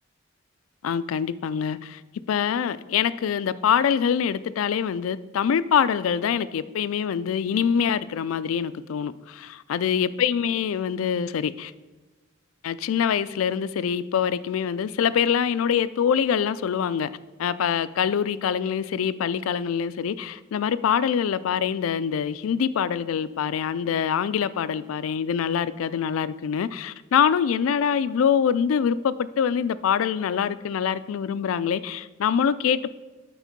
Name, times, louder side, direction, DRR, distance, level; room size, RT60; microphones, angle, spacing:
voice 1, 0.8-2.0 2.3-11.7 12.6-17.1 17.4-32.9, left 7 dB, 90° left, 0.3 m, -24 dB
9.1 x 4.3 x 5.2 m
head